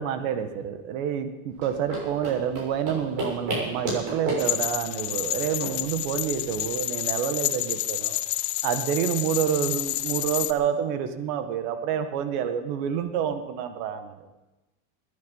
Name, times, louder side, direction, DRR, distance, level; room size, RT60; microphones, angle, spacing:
voice 1, 0.0-8.2 8.6-14.2, right 9 dB, 65° right, 9 dB, 1.7 m, -28 dB
sound 1, 1.5-6.7, right 2 dB, 45° right, 7.1 m, -33 dB
sound 2, 4.4-10.5, left 16 dB, 40° left, 0.7 m, -29 dB
20.5 x 10.5 x 5.5 m, 1.1 s
cardioid pair, 155°, 44 cm